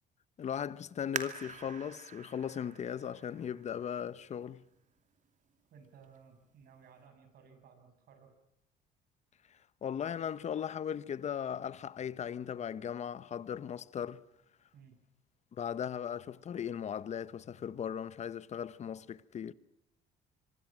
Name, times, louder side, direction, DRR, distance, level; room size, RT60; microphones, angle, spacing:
voice 1, 0.4-4.6 9.5-14.2 15.5-19.5, left 8 dB, 45° left, 1.0 m, -38 dB
sound 1, 1.1-4.5 5.1-5.2 5.8-6.2 6.6-6.7, right 7 dB, 45° right, 2.6 m, -45 dB
voice 2, 5.7-8.3 14.7-15.0, right 6 dB, 65° right, 7.6 m, -58 dB
25.5 x 24.5 x 6.3 m
cardioid pair, 110°, 17 cm